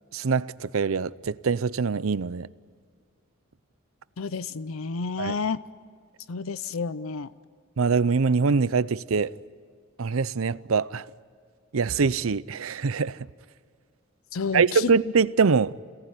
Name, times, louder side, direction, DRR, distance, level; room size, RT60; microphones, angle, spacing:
voice 1, 0.1-2.5 5.2-5.4 7.8-9.3 10.0-11.0 11.7-13.3 14.5-15.7, right 5 dB, 80° right, 0.6 m, -24 dB
voice 2, 4.2-5.6 6.3-7.3 14.3-14.8, left 5 dB, 80° left, 0.6 m, -30 dB
27.5 x 18.0 x 9.7 m
head